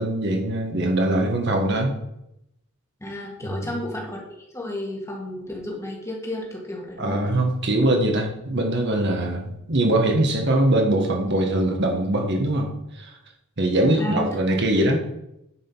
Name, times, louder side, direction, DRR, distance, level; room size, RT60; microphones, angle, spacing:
voice 1, 0.0-1.9 3.4-3.7 7.0-12.7 13.0-13.1 13.6-15.0, right 1 dB, 50° right, 2 dB, 1.5 m, -22 dB
voice 2, 3.0-4.2 4.5-7.2 14.0-14.3 14.7-15.0, left 1 dB, 15° left, -1 dB, 1.9 m, -32 dB
10.0 x 5.1 x 5.6 m, 0.84 s
head